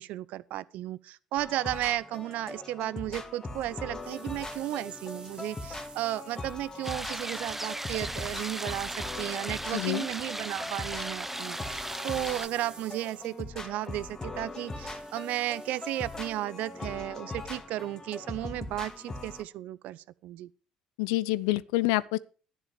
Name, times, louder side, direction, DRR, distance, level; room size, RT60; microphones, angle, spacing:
voice 1, 0.0-20.5, right 15 dB, 60° right, 0.6 m, -34 dB
sound 1, 1.4-19.4, left 2 dB, 20° left, 1.9 m, -41 dB
sound 2, 3.7-10.5 10.8-16.9, right 4 dB, 30° right, 1.7 m, -52 dB
sound 3, 6.8-12.5, right 1 dB, 10° right, 0.6 m, -37 dB
voice 2, 9.7-10.1 21.0-22.2, left 18 dB, 70° left, 0.5 m, -27 dB
12.0 x 10.0 x 4.9 m
figure-of-eight pair, 55°, 3 cm